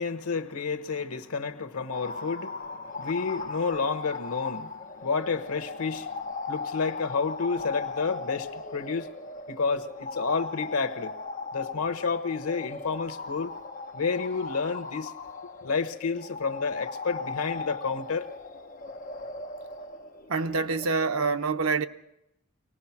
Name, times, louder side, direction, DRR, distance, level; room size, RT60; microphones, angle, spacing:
voice 1, 0.0-9.1 9.5-11.1 11.5-13.5 13.9-15.1 15.6-18.3, left 5 dB, 90° left, 1.2 m, -30 dB
sound 1, 1.9-21.3, left 4 dB, 35° left, 1.0 m, -38 dB
voice 2, 20.3-21.9, right 4 dB, 85° right, 0.9 m, -26 dB
23.5 x 19.0 x 5.9 m
head